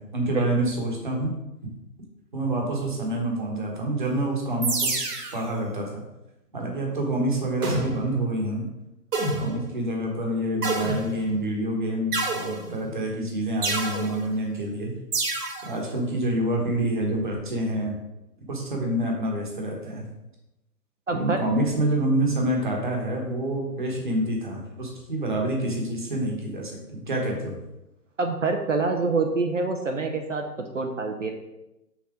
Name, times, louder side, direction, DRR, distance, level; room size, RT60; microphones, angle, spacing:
voice 1, 0.0-1.3 2.3-4.9 5.3-6.0 6.5-8.6 9.3-14.9 15.6-17.9 18.5-20.1 21.1-27.6, right 1 dB, 30° right, 0 dB, 1.1 m, -27 dB
sound 1, 4.6-5.5 7.6-8.2 9.1-9.7 10.6-11.3 12.1-12.9 13.6-14.2 15.1-15.7, right 3 dB, 65° right, 1.6 m, -28 dB
voice 2, 21.1-21.4 28.2-30.4 30.7-31.3, right 3 dB, 50° right, 4 dB, 0.6 m, -26 dB
5.9 x 4.2 x 4.9 m, 0.94 s
hypercardioid pair, 175°, 49 cm